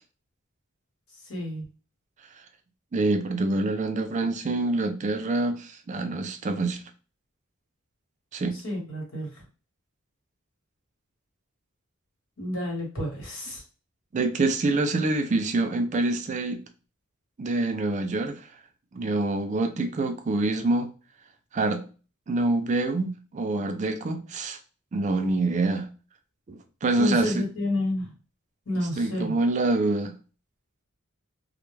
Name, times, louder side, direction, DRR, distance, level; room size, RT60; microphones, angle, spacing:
voice 1, 1.3-1.6 8.5-9.4 12.4-13.6 27.0-28.1 28.7-29.4, left 1 dB, 80° left, 1.1 m, -30 dB
voice 2, 2.9-6.8 8.3-8.6 14.1-16.6 17.4-18.4 18.9-20.9 21.5-21.8 22.3-24.6 24.9-25.9 26.5-27.5 28.7-30.2, right 2 dB, 35° right, 0.4 m, -26 dB
2.1 x 2.1 x 3.1 m
head